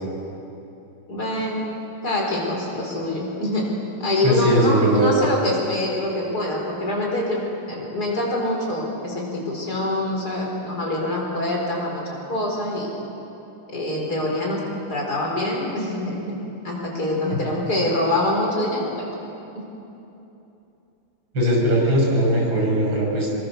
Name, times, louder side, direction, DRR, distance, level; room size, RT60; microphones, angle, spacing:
voice 1, 1.1-1.7 2.0-3.7 4.0-7.4 7.7-12.9 13.7-14.6 14.9-19.1 19.5-19.7, left 1 dB, 45° left, -2 dB, 5.1 m, -25 dB
voice 2, 4.2-5.1 17.3-17.4 21.3-23.3, equal, 65° right, -3 dB, 6.6 m, -19 dB
26.5 x 23.0 x 7.0 m, 2.9 s
omnidirectional pair, 2.4 m